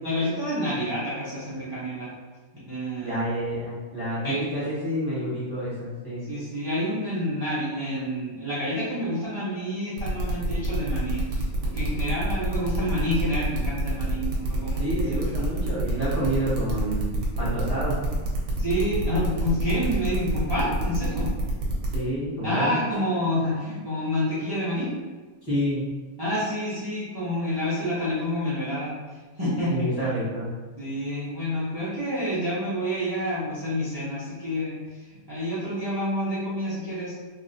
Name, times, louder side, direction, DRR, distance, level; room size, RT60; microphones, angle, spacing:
voice 1, 0.0-2.1 2.5-3.2 4.2-4.4 6.3-14.9 18.6-21.3 22.4-24.9 26.2-29.0 29.4-29.9 30.8-37.1, equal, 25° right, -11 dB, 0.6 m, -28 dB
voice 2, 3.0-6.3 14.8-18.2 21.9-22.8 25.4-26.1 29.7-30.5, right 1 dB, 15° left, -11 dB, 1.2 m, -29 dB
sound 1, 10.0-22.0, right 1 dB, 90° right, 1.3 m, -30 dB
3.0 x 2.8 x 2.7 m, 1.3 s
omnidirectional pair, 1.5 m